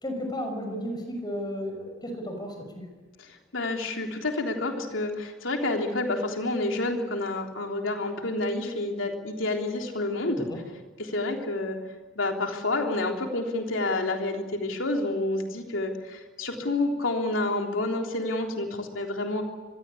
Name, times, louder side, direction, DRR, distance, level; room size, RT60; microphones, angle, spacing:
voice 1, 0.0-2.5 10.5-10.6, equal, 20° left, 5 dB, 6.0 m, -33 dB
voice 2, 3.2-10.5 11.0-11.8 12.2-19.4, left 2 dB, 75° left, 2 dB, 3.6 m, -29 dB
25.5 x 21.5 x 8.6 m, 1.3 s
head